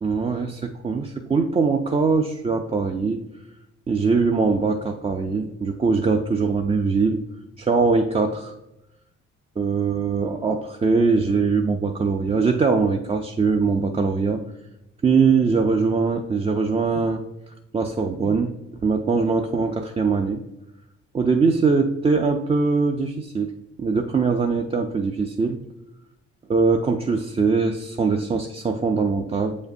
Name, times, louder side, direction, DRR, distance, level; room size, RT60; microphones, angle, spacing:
voice 1, 0.0-3.2 3.9-7.2 7.6-8.5 9.6-14.4 15.0-17.2 17.7-18.6 18.8-20.4 21.1-23.5 23.8-25.6 26.5-29.6, right 4 dB, 20° right, 4 dB, 0.3 m, -22 dB
7.3 x 5.0 x 2.6 m, 0.89 s
cardioid pair, 90°, 30 cm